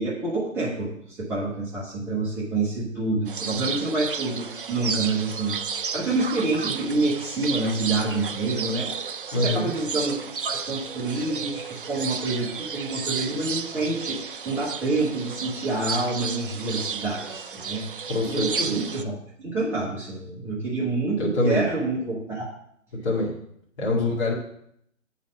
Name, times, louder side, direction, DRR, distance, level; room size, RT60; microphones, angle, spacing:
voice 1, 0.0-22.5, right 2 dB, 5° right, -7 dB, 0.9 m, -28 dB
sound 1, 3.3-19.0, right 6 dB, 40° right, 0.4 m, -33 dB
voice 2, 9.3-9.7 18.0-18.8 21.2-21.6 23.0-23.3 23.8-24.3, left 1 dB, 25° left, -5 dB, 2.4 m, -24 dB
8.6 x 4.1 x 7.1 m, 0.71 s
figure-of-eight pair, 150°, 41 cm